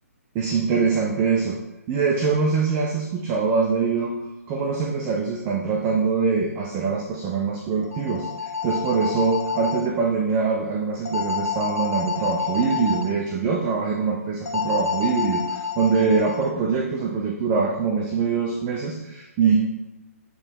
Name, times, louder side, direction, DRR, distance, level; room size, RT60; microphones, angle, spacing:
voice 1, 0.3-1.6 1.9-4.1 4.5-19.6, right 5 dB, 25° right, 0 dB, 0.7 m, -23 dB
sound 1, 7.8-9.8 11.0-13.0 14.5-16.4, left 6 dB, 90° left, 1.3 m, -28 dB
7.9 x 3.4 x 4.1 m, 0.99 s
hypercardioid pair, 145°, 8 cm